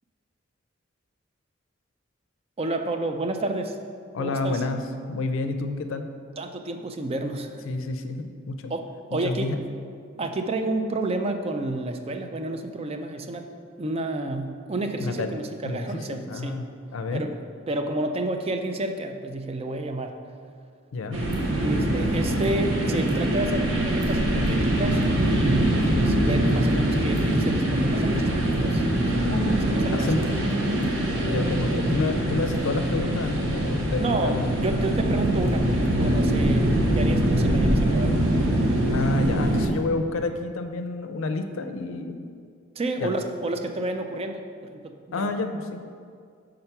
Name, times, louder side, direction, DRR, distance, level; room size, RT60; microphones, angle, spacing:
voice 1, 2.6-3.8 4.2-4.6 6.4-7.7 8.7-9.5 10.2-13.5 13.8-16.6 17.1-17.3 17.7-20.2 21.6-30.3 34.0-39.0 42.8-44.4 44.7-45.3, right 2 dB, 30° right, 6 dB, 0.4 m, -30 dB
voice 2, 4.1-6.1 7.7-8.7 9.2-9.6 15.0-15.3 15.6-16.6 16.9-17.3 20.9-21.2 29.9-30.2 31.2-35.1 38.9-42.2 43.0-43.1 45.1-45.8, left 3 dB, 90° left, 7 dB, 0.4 m, -29 dB
sound 1, 21.1-39.7, right 1 dB, 75° right, 0.9 m, -23 dB
5.5 x 3.8 x 5.8 m, 2.2 s
head